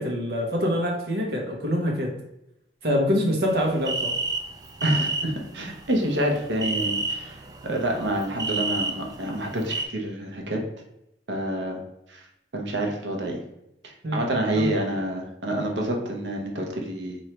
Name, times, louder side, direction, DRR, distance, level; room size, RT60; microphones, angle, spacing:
voice 1, 0.0-2.1 2.8-4.1 14.0-14.2 14.6-14.7, equal, 60° right, 0 dB, 1.0 m, -25 dB
sound 1, 3.5-9.9, right 3 dB, 20° right, 0.3 m, -31 dB
voice 2, 4.8-7.4 7.6-10.6 11.3-11.8 12.1-12.2 12.5-13.4 13.8-17.2, right 1 dB, 85° right, 1 dB, 0.9 m, -27 dB
3.1 x 2.6 x 4.3 m, 0.85 s
head